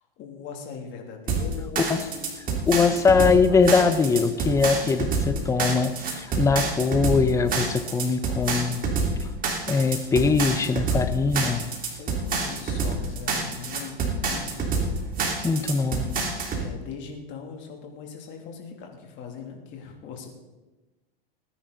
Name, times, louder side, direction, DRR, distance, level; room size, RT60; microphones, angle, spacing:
voice 1, 0.2-3.7 12.0-15.1 15.7-15.8 16.0-16.3 16.6-20.3, left 6 dB, 40° left, 2 dB, 3.0 m, -40 dB
sound 1, 1.3-16.6, right 4 dB, 30° right, 3.0 m, -27 dB
voice 2, 2.7-8.8 9.2-9.3 9.7-11.6 15.4-16.1, left 4 dB, 10° left, 10 dB, 0.7 m, -22 dB
19.5 x 10.0 x 4.1 m, 1.1 s
hypercardioid pair, 120°, 30 cm